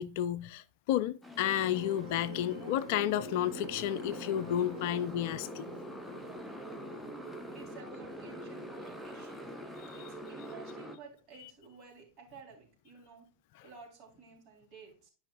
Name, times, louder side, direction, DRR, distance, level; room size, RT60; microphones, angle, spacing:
voice 1, 0.0-5.7, left 11 dB, 50° left, 0.4 m, -32 dB
Motorcycle, 1.2-11.0, equal, ahead, 0.9 m, -45 dB
sound 1, 1.4-8.4, equal, 85° right, 1.3 m, -47 dB
voice 2, 6.9-9.5 9.9-13.3 13.6-15.1, right 4 dB, 35° right, 3.8 m, -53 dB
11.0 x 5.5 x 2.4 m
figure-of-eight pair, 90°, 0 cm